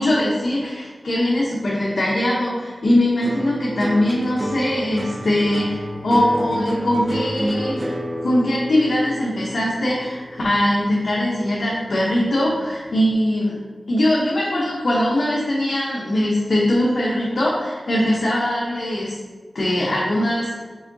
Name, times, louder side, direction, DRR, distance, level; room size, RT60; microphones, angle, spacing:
voice 1, 0.0-7.9 8.2-13.6 13.9-19.2 19.5-20.6, left 1 dB, 80° left, -5 dB, 0.7 m, -21 dB
sound 1, 3.2-11.7 12.0-12.6, right 1 dB, 25° right, 0.5 m, -30 dB
4.8 x 3.8 x 2.7 m, 1.4 s
wide cardioid pair, 75°, 0 cm